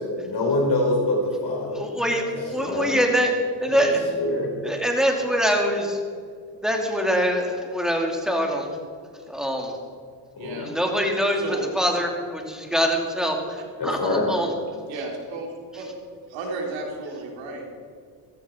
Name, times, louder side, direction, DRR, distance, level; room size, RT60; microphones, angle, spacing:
voice 1, 0.0-2.2 2.5-2.9 3.7-3.9 4.2-4.5 10.3-10.7 13.8-14.3, left 2 dB, 55° left, 0 dB, 4.6 m, -25 dB
voice 2, 1.7-2.2 2.5-3.3 3.6-4.0 4.6-6.0 6.6-8.7 9.3-9.7 10.6-14.5, equal, ahead, 1 dB, 2.7 m, -24 dB
voice 3, 14.9-15.9 16.3-17.7, right 2 dB, 85° right, 1 dB, 3.1 m, -33 dB
14.5 x 14.0 x 4.4 m, 2.1 s
cardioid pair, 85°, 45 cm